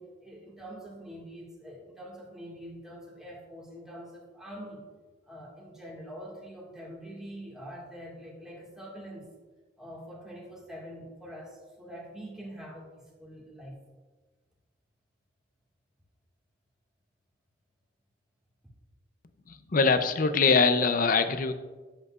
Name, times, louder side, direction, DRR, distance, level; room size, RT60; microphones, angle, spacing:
voice 1, 0.0-4.8 5.3-9.3 9.8-13.8, equal, 5° right, -5 dB, 1.8 m, -44 dB
voice 2, 19.5-21.5, left 4 dB, 45° left, 9 dB, 0.5 m, -23 dB
10.5 x 7.8 x 2.4 m, 1.3 s
head